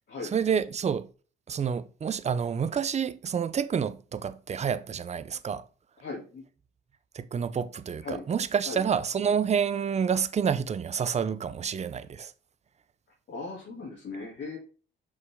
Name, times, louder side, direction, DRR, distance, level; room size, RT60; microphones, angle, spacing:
voice 1, 0.3-1.1 1.5-5.6 7.1-12.3, right 7 dB, 35° right, 0.6 m, -28 dB
voice 2, 6.0-6.4 8.0-8.2 8.6-8.8 13.3-14.6, left 3 dB, 60° left, 2.5 m, -38 dB
6.5 x 5.4 x 3.6 m
cardioid pair, 90°, 20 cm